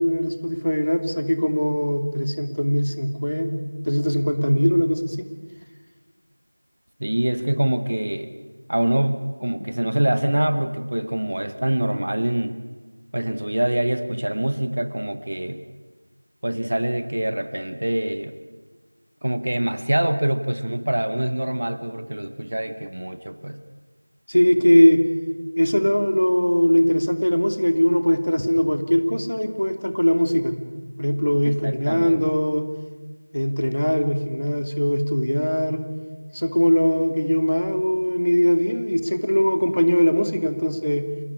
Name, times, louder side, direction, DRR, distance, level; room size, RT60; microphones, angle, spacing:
voice 1, 0.0-3.5 3.8-5.3 24.3-25.0 25.6-30.5 31.0-32.7 33.3-35.8 36.3-41.1, equal, 50° left, 8 dB, 2.7 m, -20 dB
voice 2, 7.0-8.3 8.7-12.6 13.1-15.6 16.4-18.4 19.2-23.6 31.4-32.2, right 1 dB, 20° right, 11 dB, 0.7 m, -25 dB
28.5 x 17.0 x 9.8 m, 1.4 s
figure-of-eight pair, 180°, 0 cm